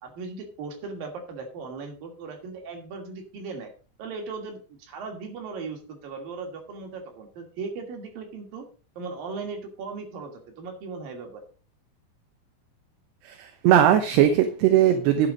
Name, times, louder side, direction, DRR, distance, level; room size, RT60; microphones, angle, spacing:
voice 1, 0.0-3.7 4.0-8.7 9.0-10.3 10.6-11.4, right 4 dB, 55° right, 3 dB, 4.0 m, -37 dB
voice 2, 13.3-15.3, right 10 dB, 75° right, 7 dB, 3.0 m, -19 dB
11.0 x 8.1 x 5.3 m, 0.36 s
omnidirectional pair, 5.1 m